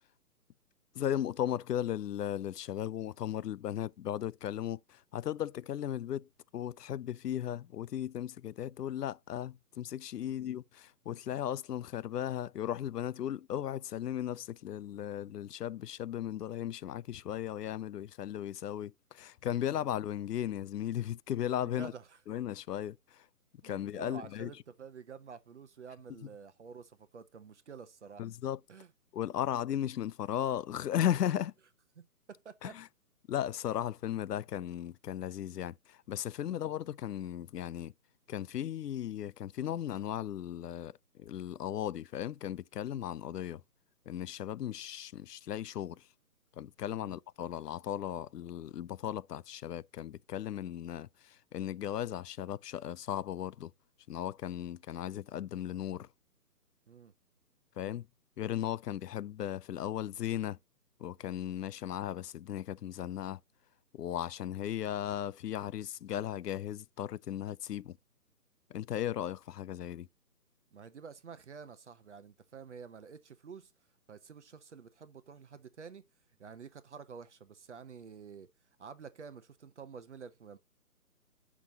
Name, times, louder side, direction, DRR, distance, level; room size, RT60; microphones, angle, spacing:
voice 1, 0.9-21.9 22.3-23.2 23.6-24.5 28.2-28.6 29.1-31.5 32.6-32.9 33.3-37.9 38.3-43.6 44.1-46.0 46.6-53.7 54.1-56.1 57.8-58.1 58.4-60.6 61.0-63.4 63.9-68.0 68.7-70.1, left 11 dB, 80° left, 0.5 m, -36 dB
voice 2, 21.7-22.2 23.6-28.2 28.7-28.9 32.0-32.1 32.3-32.7 36.4-36.6 46.9-47.1 56.9-57.1 70.7-73.7 74.1-76.0 76.4-78.5 78.8-80.6, right 6 dB, 45° right, 0.8 m, -49 dB
7.1 x 6.1 x 2.7 m
hypercardioid pair, 155°, 47 cm